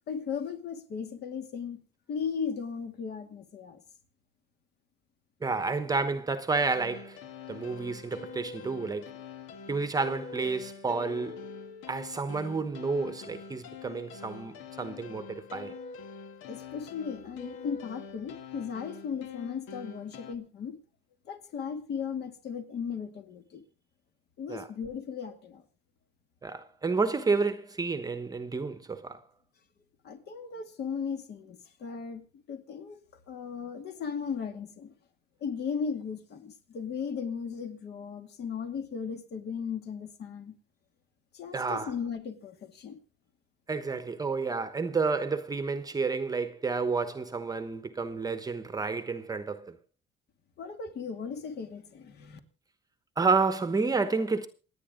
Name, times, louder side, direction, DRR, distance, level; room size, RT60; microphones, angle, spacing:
voice 1, 0.1-1.8 2.1-3.8 16.5-20.8 21.3-23.6 24.4-25.6 30.0-33.0 33.3-34.9 35.4-40.5 41.3-43.0 50.6-52.4, left 6 dB, 55° left, 2.5 m, -36 dB
voice 2, 5.4-7.2 7.5-9.1 9.7-11.4 11.9-15.7 24.5-24.7 26.4-29.2 41.5-41.9 43.7-49.8 53.2-54.5, right 4 dB, 20° right, 1.0 m, -30 dB
sound 1, 6.6-20.4, left 5 dB, 75° left, 1.8 m, -45 dB
28.0 x 9.8 x 3.8 m
cardioid pair, 140°, 20 cm